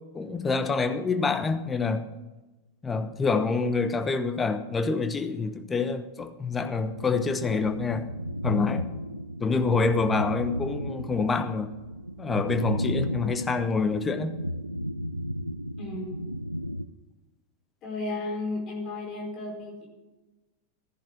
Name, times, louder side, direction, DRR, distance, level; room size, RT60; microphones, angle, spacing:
voice 1, 0.1-2.1 2.8-8.1 8.4-8.9 9.4-11.7 12.2-14.4, left 4 dB, 15° left, 1.1 m, -27 dB
sound 1, 6.8-16.9, equal, 90° right, 0.5 m, -34 dB
voice 2, 15.8-16.2 17.8-19.9, left 2 dB, 35° left, 4.6 m, -34 dB
14.5 x 10.5 x 6.0 m
figure-of-eight pair, 90°, 0 cm